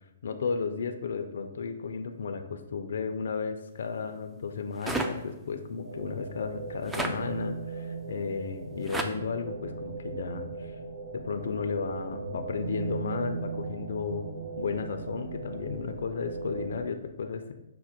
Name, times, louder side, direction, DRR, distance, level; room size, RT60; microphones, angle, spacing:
voice 1, 0.2-10.8 11.1-14.3 14.6-17.5, left 5 dB, 70° left, 6 dB, 0.4 m, -34 dB
sound 1, 4.8-5.1 6.9-7.1 8.9-9.1, right 2 dB, 5° right, 0.4 m, -30 dB
sound 2, 5.8-16.8, right 4 dB, 70° right, 0.7 m, -38 dB
5.8 x 2.1 x 4.3 m, 0.94 s
hypercardioid pair, 140°, 0 cm